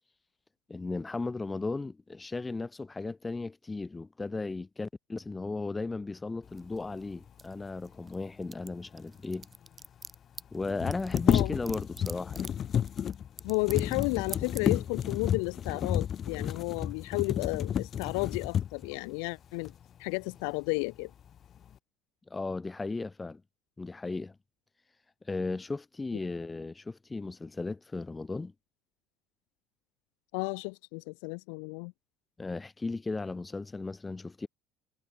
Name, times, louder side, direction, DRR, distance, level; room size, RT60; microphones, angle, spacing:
voice 1, 0.7-9.5 10.5-12.5 22.3-23.4 23.8-24.4 25.2-28.5 32.4-34.5, left 3 dB, 15° left, 3.0 m, -36 dB
sound 1, 6.6-8.2 8.4-14.0 14.3-14.7, right 4 dB, 25° right, 3.3 m, -44 dB
sound 2, 9.2-9.3 9.4-9.5 10.6-19.0 19.6-19.8 20.2-20.8 21.2-21.7, left 9 dB, 40° left, 2.3 m, -31 dB
voice 2, 13.4-19.7 20.0-21.1 30.3-31.9, left 40 dB or more, 65° left, 0.8 m, -32 dB
figure-of-eight pair, 60°, 0 cm